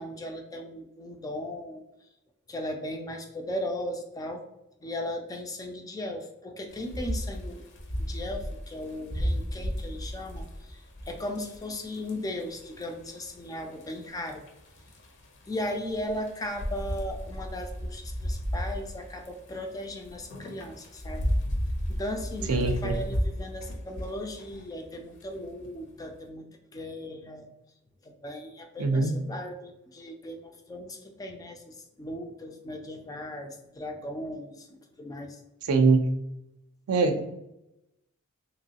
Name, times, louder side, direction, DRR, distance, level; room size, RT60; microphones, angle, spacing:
voice 1, 0.0-1.8 2.5-4.4 4.8-7.6 8.0-14.4 15.5-21.3 21.9-26.5 26.7-27.5 28.0-35.4, left 1 dB, 15° left, 5 dB, 0.3 m, -37 dB
sound 1, 6.7-26.1, equal, 55° left, 0.6 m, -34 dB
voice 2, 22.5-23.0 28.8-29.1 35.7-36.0 36.9-37.3, right 3 dB, 70° right, 7 dB, 0.4 m, -22 dB
3.0 x 3.0 x 2.7 m, 0.89 s
head